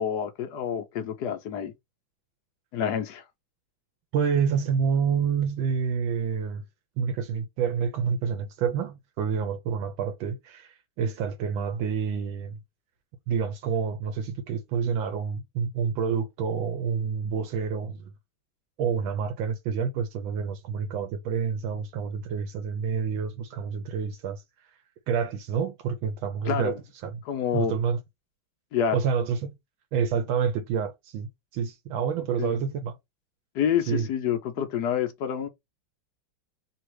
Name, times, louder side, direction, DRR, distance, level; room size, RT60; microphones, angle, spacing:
voice 1, 0.0-1.7 2.7-3.2 26.5-26.8 27.3-27.7 28.7-29.0 32.4-32.6 33.5-35.5, left 8 dB, 70° left, 1.0 m, -28 dB
voice 2, 4.1-6.6 7.0-12.6 13.3-18.1 18.8-24.4 25.1-26.8 27.0-27.2 27.5-28.0 28.9-29.6 29.9-32.9 33.9-34.1, right 6 dB, 80° right, 1.4 m, -28 dB
3.2 x 2.8 x 4.6 m
omnidirectional pair, 2.2 m